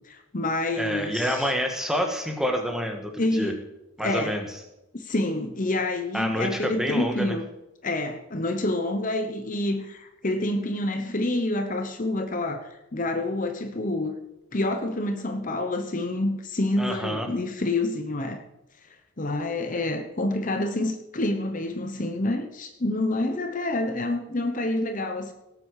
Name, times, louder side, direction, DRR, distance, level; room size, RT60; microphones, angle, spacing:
voice 1, 0.0-1.5 3.2-3.6 4.0-4.4 4.9-7.5 7.8-14.2 14.5-18.4 18.9-25.3, left 2 dB, 35° left, 6 dB, 0.9 m, -28 dB
voice 2, 0.8-3.5 4.0-4.5 6.1-7.3 16.8-17.3, equal, ahead, 3 dB, 1.7 m, -28 dB
18.0 x 8.4 x 4.9 m, 0.93 s
head